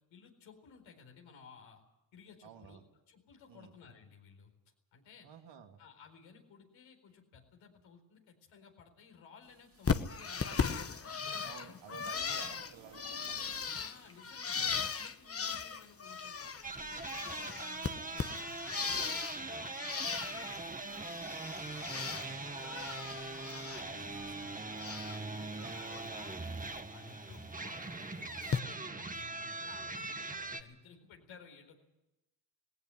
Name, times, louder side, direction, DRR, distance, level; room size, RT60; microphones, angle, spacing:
voice 1, 0.1-1.8 2.1-2.8 3.1-5.3 5.8-11.2 13.7-20.7 21.6-23.2 23.5-24.7 25.3-31.7, left 6 dB, 85° left, 3 dB, 4.4 m, -57 dB
voice 2, 2.4-2.8 3.5-3.7 5.2-5.8 11.4-13.7 25.5-25.8, right 7 dB, 65° right, 4 dB, 2.6 m, -54 dB
sound 1, 9.4-26.8, right 5 dB, 50° right, 3.8 m, -62 dB
Bird, 9.8-16.6 16.9-19.4 19.7-20.6 20.9-22.3 22.6-23.8 24.1-25.2 25.6-26.0 27.3-27.4 28.4-28.6, left 6 dB, 30° left, 1.1 m, -37 dB
sound 2, 16.6-30.6, right 3 dB, 20° right, 1.6 m, -41 dB
18.0 x 17.5 x 9.9 m, 0.95 s
supercardioid pair, 65°, 45 cm